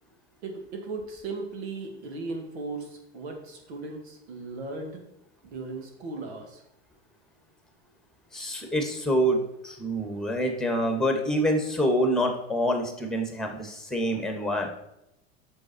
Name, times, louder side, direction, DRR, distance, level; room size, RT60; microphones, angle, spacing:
voice 1, 0.4-5.0 5.4-6.6, right 3 dB, 70° right, 3 dB, 2.4 m, -37 dB
voice 2, 8.3-14.7, equal, ahead, 4 dB, 2.0 m, -26 dB
8.3 x 6.6 x 4.5 m, 0.85 s
hypercardioid pair, 85°, 33 cm